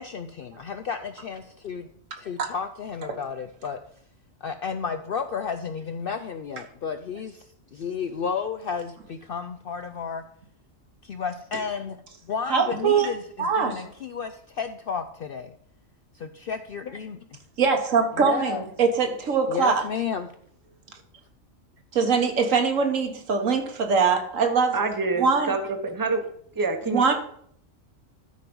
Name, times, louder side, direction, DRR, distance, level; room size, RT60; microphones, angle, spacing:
voice 1, 0.0-3.8 4.4-10.2 11.0-12.0 12.2-15.5 16.1-17.4 18.2-18.6 19.5-20.3, left 6 dB, 65° left, 8 dB, 0.6 m, -32 dB
voice 2, 12.5-13.1 13.4-13.9 17.6-19.8 21.9-24.8 25.2-25.5 26.9-27.1, right 5 dB, 70° right, 5 dB, 1.6 m, -22 dB
voice 3, 24.7-26.2 26.6-27.1, right 3 dB, 20° right, 7 dB, 0.8 m, -27 dB
12.5 x 4.6 x 5.3 m, 0.65 s
omnidirectional pair, 1.4 m